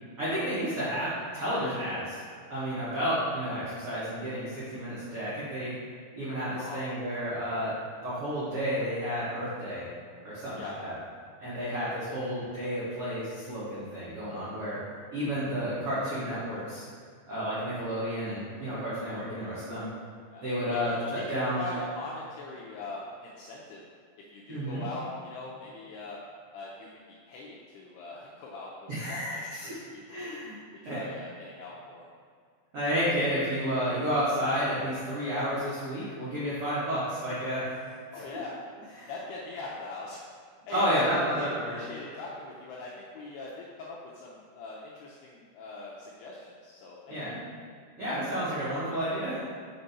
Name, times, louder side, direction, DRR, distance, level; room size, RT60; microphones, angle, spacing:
voice 1, 0.2-2.2 2.5-5.7 6.1-7.7 8.0-9.8 10.2-11.0 11.4-14.8 15.1-16.8 17.3-19.9 20.4-21.6 24.5-24.8 28.9-29.8 30.1-31.0 32.7-37.7 39.0-39.1 40.7-41.7 47.1-47.4 48.0-49.4, equal, 85° right, -12 dB, 1.2 m, -31 dB
voice 2, 20.3-23.8 24.3-26.2 26.5-30.3 30.8-32.0 38.1-38.6 39.1-40.3 40.7-47.4, left 3 dB, 85° left, -4 dB, 2.3 m, -41 dB
6.5 x 4.5 x 4.2 m, 2.1 s
omnidirectional pair, 5.3 m